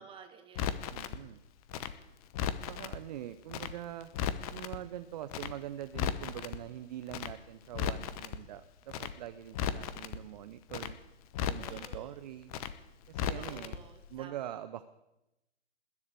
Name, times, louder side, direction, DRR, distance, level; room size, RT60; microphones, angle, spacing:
voice 1, 0.0-0.9 11.4-12.2 13.3-14.5, right 7 dB, 15° right, 5 dB, 1.9 m, -52 dB
Crackle, 0.6-1.2 1.7-3.0 3.5-3.7 4.0-4.8 5.3-5.5 5.8-6.6 7.1-7.3 7.6-8.4 8.9-9.1 9.4-10.2 10.7-10.9 11.2-12.0 12.5-12.7 13.0-13.8 14.0-14.1, left 8 dB, 30° left, 1.0 m, -35 dB
voice 2, 0.9-1.4 2.7-4.1 4.5-11.0 11.4-12.5 13.1-13.8 14.1-14.8, right 12 dB, 35° right, 11 dB, 0.7 m, -43 dB
20.5 x 7.3 x 8.1 m, 0.94 s
figure-of-eight pair, 125°, 35 cm